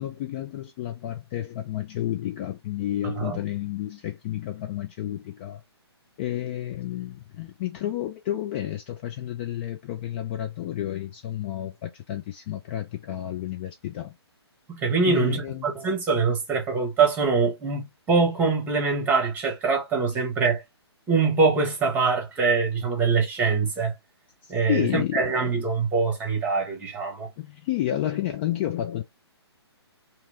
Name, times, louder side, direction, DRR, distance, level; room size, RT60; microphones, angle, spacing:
voice 1, 0.0-5.6 6.2-14.1 15.1-15.7 24.4-25.3 27.4-29.0, left 12 dB, 25° left, 0.4 m, -31 dB
voice 2, 3.0-3.4 14.7-20.6 21.1-23.9 24.5-27.3, right 4 dB, 15° right, 1.4 m, -24 dB
2.9 x 2.8 x 3.3 m
figure-of-eight pair, 130°, 14 cm